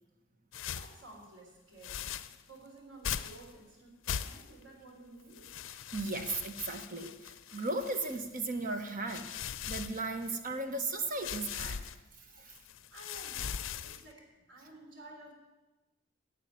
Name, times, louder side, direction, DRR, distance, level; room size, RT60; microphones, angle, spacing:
sound 1, 0.5-1.0 1.8-2.4 3.0-3.5 4.0-4.6 5.3-8.3 8.9-10.5 11.2-11.9 12.5-14.1, left 8 dB, 80° left, 0.5 m, -40 dB
voice 1, 0.8-2.1 2.4-5.5 12.9-15.3, right 2 dB, 85° right, 0 dB, 3.7 m, -53 dB
voice 2, 5.7-9.3 9.7-11.8 12.4-12.5, right 2 dB, 45° right, 6 dB, 1.2 m, -36 dB
12.0 x 6.9 x 9.4 m, 1.1 s
head